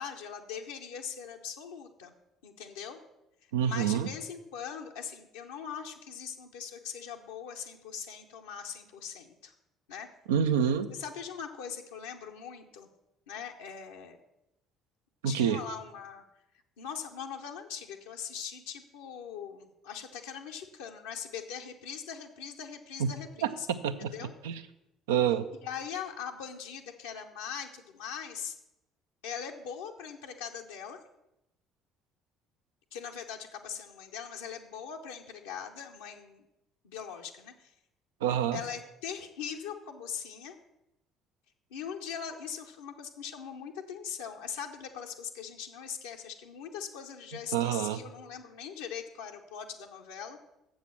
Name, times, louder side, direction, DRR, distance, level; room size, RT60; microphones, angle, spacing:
voice 1, 0.0-2.1 2.4-3.0 3.6-9.5 9.9-10.1 10.9-12.9 13.3-14.2 15.2-16.2 16.8-23.7 24.0-24.3 25.6-28.5 29.2-31.0 32.9-36.4 36.8-37.7 38.5-40.6 41.7-50.4, left 7 dB, 75° left, 2 dB, 0.7 m, -41 dB
voice 2, 3.5-4.1 10.3-10.9 15.2-15.6 23.0-23.1 23.4-24.1 24.4-24.6 25.1-25.4 38.2-38.6 47.5-48.0, right 8 dB, 75° right, 10 dB, 0.5 m, -27 dB
7.4 x 6.3 x 7.3 m, 0.90 s
figure-of-eight pair, 50°, 0 cm